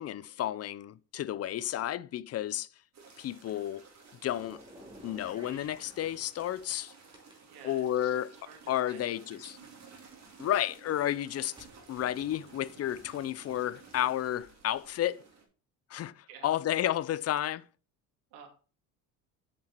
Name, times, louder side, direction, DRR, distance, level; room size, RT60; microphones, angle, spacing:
voice 1, 0.0-2.7 3.2-3.8 4.2-4.6 5.0-6.9 7.6-8.3 8.7-9.5 10.4-11.5 11.9-15.2 15.9-17.7, left 12 dB, 40° left, 0.5 m, -32 dB
sound 1, 2.9-15.5, right 5 dB, 45° right, 2.8 m, -55 dB
sound 2, 4.2-6.8 7.1-10.1 10.7-14.2, equal, 10° right, 2.9 m, -55 dB
voice 2, 7.4-9.9 16.3-16.6 18.3-18.5, right 6 dB, 75° right, 2.6 m, -53 dB
7.6 x 5.8 x 4.4 m
supercardioid pair, 95°, 38 cm